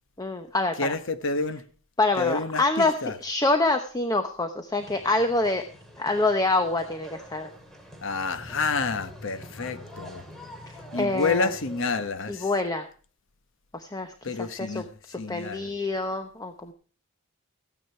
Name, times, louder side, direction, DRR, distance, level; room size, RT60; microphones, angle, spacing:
voice 1, 0.2-0.9 2.0-5.6 6.0-7.5 11.0-11.5 12.3-12.9 13.7-14.1 14.4-16.7, left 2 dB, 20° left, 0.9 m, -26 dB
voice 2, 0.8-1.6 2.2-3.1 8.0-10.2 10.9-12.5 14.2-14.9 15.2-15.7, left 4 dB, 65° left, 1.1 m, -29 dB
sound 1, 4.8-12.1, equal, ahead, 2.6 m, -45 dB
14.5 x 9.7 x 4.5 m
head